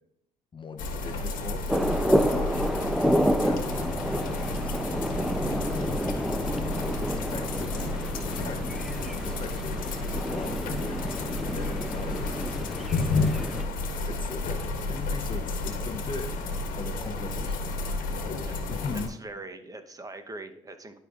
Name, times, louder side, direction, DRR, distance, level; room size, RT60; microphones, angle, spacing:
voice 1, 0.5-4.8 5.4-6.1 6.4-8.8 9.2-9.8 10.2-13.1 14.1-14.6 14.9-16.3 16.8-17.8 18.2-18.4 18.7-19.1, left 4 dB, 35° left, 7 dB, 0.7 m, -40 dB
sound 1, 0.8-19.1, left 3 dB, 65° left, 1.2 m, -31 dB
sound 2, 1.7-13.6, equal, ahead, 0.5 m, -29 dB
voice 2, 18.9-21.0, right 2 dB, 25° right, 8 dB, 0.9 m, -42 dB
11.5 x 5.1 x 2.5 m, 0.76 s
supercardioid pair, 70°, 15 cm